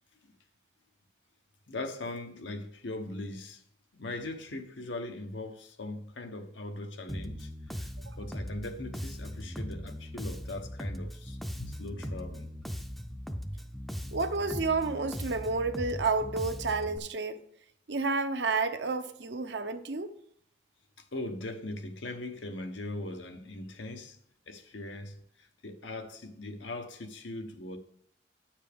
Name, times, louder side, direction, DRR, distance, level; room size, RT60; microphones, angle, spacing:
voice 1, 1.7-3.6 3.9-12.5 21.0-24.2 24.5-27.8, left 2 dB, 90° left, 1.0 m, -40 dB
Bass guitar, 7.1-17.0, equal, ahead, 0.5 m, -39 dB
voice 2, 14.1-17.4 17.9-20.1, right 3 dB, 70° right, 0.8 m, -30 dB
10.0 x 7.3 x 3.5 m
head